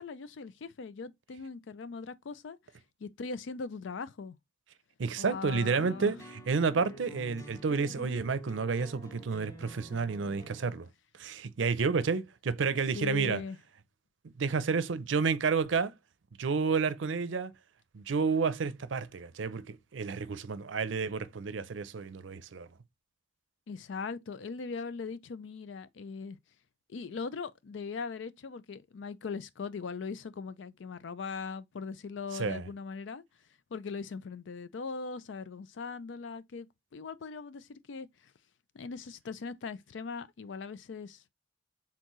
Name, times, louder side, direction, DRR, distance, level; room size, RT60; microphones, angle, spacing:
voice 1, 0.0-2.6 3.0-4.4 5.2-6.1 8.0-8.2 12.9-13.6 23.7-26.4 26.9-33.2 33.7-38.1 38.7-41.2, left 4 dB, 70° left, 0.4 m, -40 dB
voice 2, 5.0-10.9 11.2-13.4 14.4-15.9 16.4-17.5 17.9-22.7 32.3-32.7, right 5 dB, 75° right, 0.5 m, -30 dB
sound 1, 5.8-10.8, equal, 15° left, 1.2 m, -48 dB
4.5 x 3.6 x 3.0 m
head